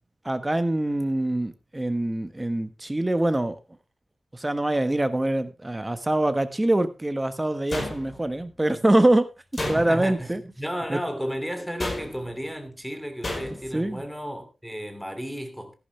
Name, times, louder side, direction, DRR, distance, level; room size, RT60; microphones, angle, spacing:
voice 1, 0.2-3.6 4.3-10.4 10.9-11.0 13.7-14.0, right 1 dB, 15° right, 1.4 m, -24 dB
sound 1, 7.7-8.4 9.5-10.2 11.8-12.4 13.2-13.8, left 1 dB, 35° left, 5.2 m, -32 dB
voice 2, 9.7-15.7, equal, ahead, 2.9 m, -33 dB
14.0 x 11.5 x 3.4 m
wide cardioid pair, 105°, 0 cm